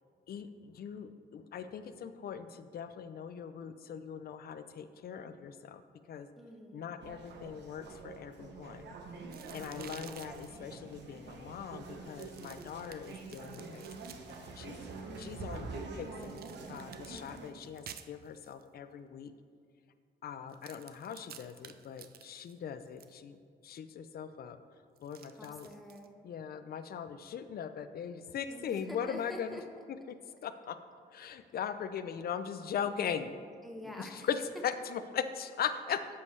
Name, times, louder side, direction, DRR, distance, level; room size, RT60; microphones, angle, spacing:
voice 1, 0.3-5.8 6.1-6.3 6.7-8.9 9.5-14.1 14.6-14.8 15.2-19.3 20.2-23.4 23.6-24.6 25.0-25.7 26.2-29.6 30.1-30.2 30.4-30.8 31.1-33.3 34.0-36.1, left 7 dB, 60° left, 11 dB, 0.5 m, -40 dB
voice 2, 6.4-6.8 9.5-9.9 17.1-17.4 25.3-26.1 28.5-29.6 33.6-34.3, equal, ahead, 1 dB, 1.0 m, -48 dB
sound 1, 7.0-17.5, right 3 dB, 75° right, 0.9 m, -46 dB
sound 2, 9.3-10.6 12.0-14.9 16.2-18.6 20.5-23.1 25.0-26.1, right 9 dB, 60° right, 0.4 m, -53 dB
9.8 x 7.0 x 3.2 m, 2.1 s
cardioid pair, 120°, 18 cm